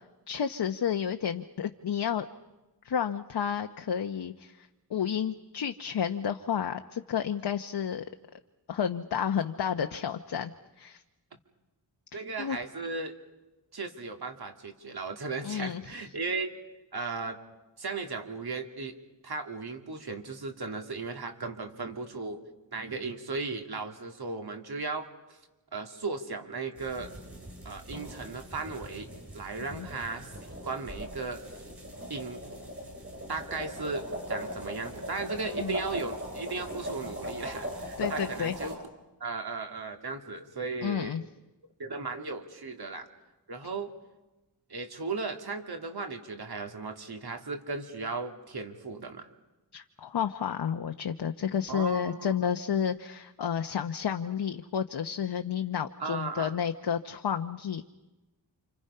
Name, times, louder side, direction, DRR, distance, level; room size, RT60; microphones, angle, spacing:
voice 1, 0.3-2.3 2.8-8.0 8.7-11.0 12.1-12.6 15.4-15.8 29.7-29.9 35.6-35.8 38.0-38.5 40.8-41.2 49.7-57.8, left 8 dB, 65° left, 6 dB, 0.9 m, -31 dB
voice 2, 12.1-13.1 13.7-16.6 16.9-17.4 17.8-18.9 19.2-22.4 22.7-25.4 25.7-27.1 27.6-30.3 30.6-31.4 32.1-32.4 33.3-38.7 39.2-41.2 41.8-43.1 43.5-43.9 44.7-49.3 51.7-52.4 56.0-56.5, right 3 dB, 60° right, 5 dB, 2.5 m, -36 dB
sound 1, 26.8-38.8, equal, 30° right, 7.4 m, -39 dB
29.5 x 27.5 x 5.6 m, 1.1 s
wide cardioid pair, 135°, 42 cm